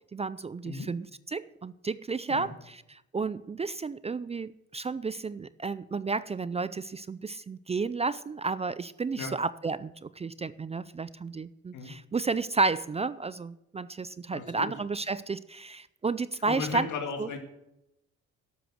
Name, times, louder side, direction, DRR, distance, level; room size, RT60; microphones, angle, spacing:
voice 1, 0.1-16.9 17.2-17.3, right 4 dB, 20° right, 16 dB, 0.4 m, -32 dB
voice 2, 14.3-14.7 16.4-17.4, left 5 dB, 75° left, 4 dB, 2.4 m, -35 dB
12.0 x 8.3 x 6.4 m, 0.89 s
cardioid pair, 90°, 30 cm